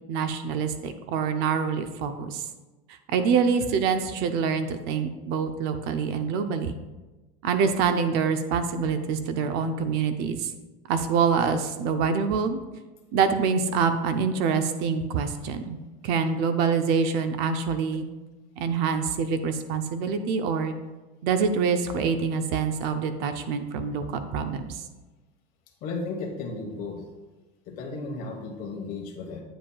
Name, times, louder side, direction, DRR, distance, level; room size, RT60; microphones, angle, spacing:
voice 1, 0.1-2.4 3.1-6.7 7.4-10.5 10.9-12.6 13.1-15.8 16.0-18.1 18.6-20.8 21.2-24.8, right 6 dB, 50° right, 9 dB, 0.5 m, -25 dB
voice 2, 25.8-27.0 27.6-29.4, left 3 dB, 45° left, 0 dB, 1.3 m, -34 dB
8.8 x 7.6 x 2.3 m, 1.1 s
cardioid pair, 165°, 20 cm